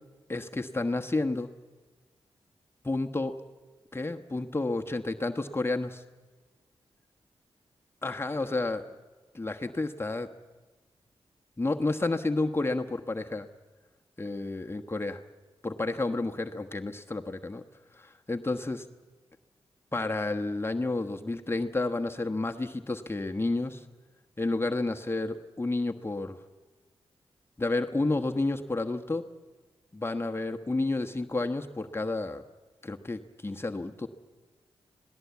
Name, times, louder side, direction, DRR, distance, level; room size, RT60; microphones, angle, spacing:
voice 1, 0.3-1.5 2.8-3.3 3.9-6.0 8.0-8.8 9.3-10.3 11.6-13.5 14.2-15.2 15.6-17.6 18.0-18.9 19.9-23.8 24.4-26.4 27.6-29.2 29.9-32.4 32.8-34.1, left 2 dB, 25° left, 4 dB, 1.2 m, -30 dB
27.0 x 18.0 x 8.4 m, 1.3 s
cardioid pair, 60°, 10 cm